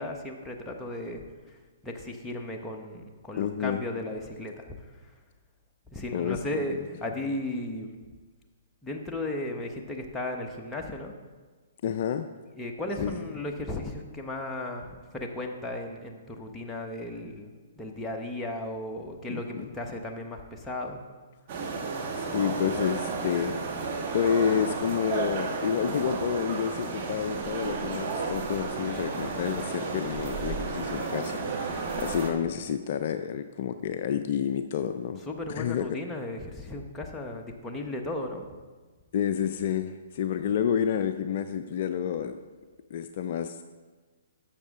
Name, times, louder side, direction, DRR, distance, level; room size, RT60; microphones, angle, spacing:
voice 1, 0.0-1.6 1.8-4.6 5.0-5.1 5.9-8.0 8.8-11.1 12.6-17.5 17.8-21.0 35.3-38.4, left 1 dB, 10° left, 1 dB, 1.1 m, -35 dB
voice 2, 3.4-3.8 6.1-6.6 11.8-12.3 13.0-13.3 19.3-19.7 22.2-23.6 24.1-35.2 35.5-36.0 39.1-42.4 42.9-43.6, left 8 dB, 50° left, 9 dB, 0.4 m, -29 dB
sound 1, 21.5-32.3, right 4 dB, 45° right, 1.5 m, -32 dB
11.5 x 7.3 x 3.7 m, 1.4 s
figure-of-eight pair, 125°, 0 cm